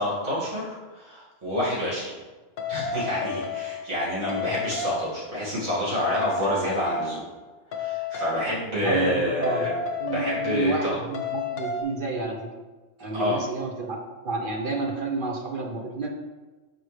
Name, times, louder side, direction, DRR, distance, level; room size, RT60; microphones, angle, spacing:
voice 1, 0.0-2.2 2.7-7.3 7.8-9.7 10.1-11.0 13.1-13.4, left 1 dB, 70° right, -8 dB, 2.5 m, -28 dB
sound 1, 2.6-4.0 4.3-5.2 6.0-7.3 7.7-8.5 9.4-10.8 11.1-11.8, left 4 dB, 85° left, 1.1 m, -31 dB
voice 2, 8.8-9.7 10.0-12.5 13.0-14.0 14.2-16.1, right 3 dB, 50° right, 1 dB, 0.6 m, -29 dB
6.1 x 4.8 x 3.2 m, 1.3 s
omnidirectional pair, 1.5 m